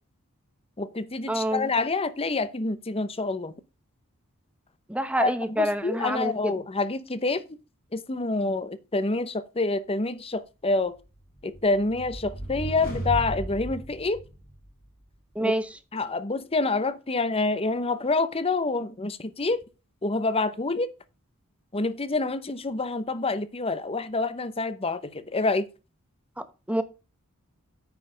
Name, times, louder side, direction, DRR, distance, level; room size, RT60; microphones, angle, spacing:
voice 1, 0.8-3.5 5.2-7.4 7.9-11.0 11.4-14.2 15.4-15.5 15.9-19.6 20.0-20.9 21.7-25.7, left 3 dB, 25° left, 0.8 m, -27 dB
voice 2, 1.3-1.7 4.9-6.5 15.3-15.7 26.4-26.8, right 1 dB, 5° right, 0.9 m, -27 dB
sound 1, 11.0-14.9, right 1 dB, 45° left, 3.8 m, -35 dB
9.2 x 5.5 x 5.1 m
head